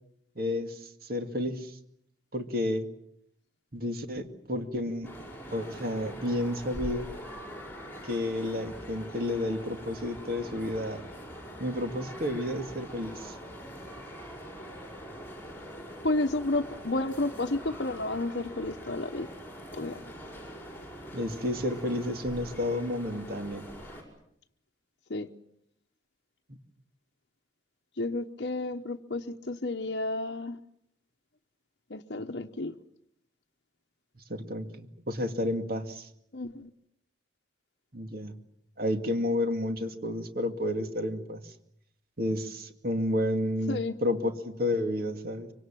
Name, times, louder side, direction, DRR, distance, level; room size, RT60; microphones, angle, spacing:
voice 1, 0.4-1.8 2.3-2.9 3.7-5.2 5.5-7.1 8.0-11.0 11.6-13.4 21.1-23.7 34.3-36.1 37.9-38.3 38.8-41.4 42.2-45.5, left 1 dB, 50° right, 7 dB, 2.3 m, -31 dB
sound 1, 5.0-24.0, equal, 10° left, 5.7 m, -43 dB
voice 2, 16.0-19.3 19.7-20.0 25.1-25.3 28.0-30.6 31.9-32.8 36.3-36.7 43.7-44.0, left 2 dB, 60° left, 3 dB, 0.9 m, -31 dB
25.0 x 24.5 x 7.5 m, 0.74 s
head